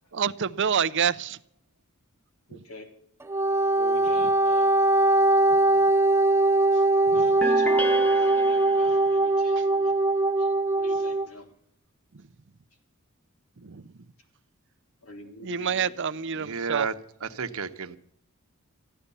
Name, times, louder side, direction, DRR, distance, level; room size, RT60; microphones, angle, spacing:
voice 1, 0.1-1.4 2.5-2.6 7.0-7.4 9.5-9.7 12.1-12.3 13.6-14.0 15.4-16.9, right 7 dB, 60° right, 0.6 m, -28 dB
voice 2, 2.5-2.9 3.7-4.8 7.1-10.0 10.4-11.5 15.0-15.9, equal, 85° left, 3.5 m, -44 dB
Wind instrument woodwind instrument, 3.2-11.3, right 2 dB, 10° right, 0.5 m, -21 dB
sound 1, 7.4-9.2, equal, 5° left, 0.9 m, -33 dB
voice 3, 16.4-16.9 17.2-18.0, right 5 dB, 85° right, 1.1 m, -31 dB
14.5 x 11.0 x 7.0 m
head